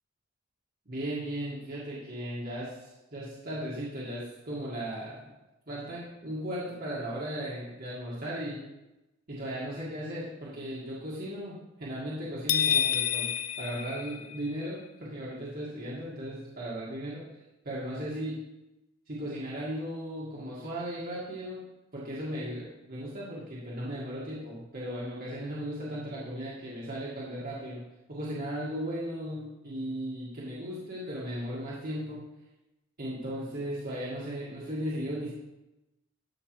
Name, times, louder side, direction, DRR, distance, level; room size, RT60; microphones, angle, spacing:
voice 1, 0.9-5.3 5.7-8.6 9.3-13.3 13.6-17.2 17.6-18.4 19.1-21.6 21.9-27.8 28.1-32.2 33.0-35.3, equal, 45° right, -8 dB, 1.8 m, -36 dB
sound 1, 12.5-14.7, left 9 dB, 85° left, 0.5 m, -28 dB
11.0 x 5.8 x 3.2 m, 0.97 s
head